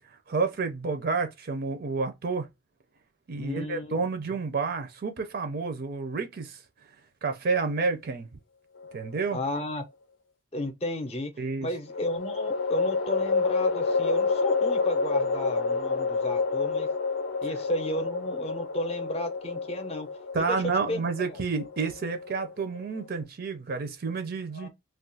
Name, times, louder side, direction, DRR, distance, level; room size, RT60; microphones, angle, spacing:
voice 1, 0.1-2.5 3.3-6.6 7.2-8.3 8.9-9.4 11.4-11.7 20.3-24.7, right 4 dB, 50° right, 0.5 m, -30 dB
voice 2, 3.4-4.0 9.3-9.8 10.5-11.3 11.6-16.9 17.4-20.1 20.4-20.6 20.9-21.1 24.5-24.7, left 1 dB, 30° left, 0.6 m, -33 dB
sound 1, 8.8-9.6 11.9-23.2, left 4 dB, 90° left, 0.6 m, -29 dB
2.4 x 2.2 x 3.8 m
head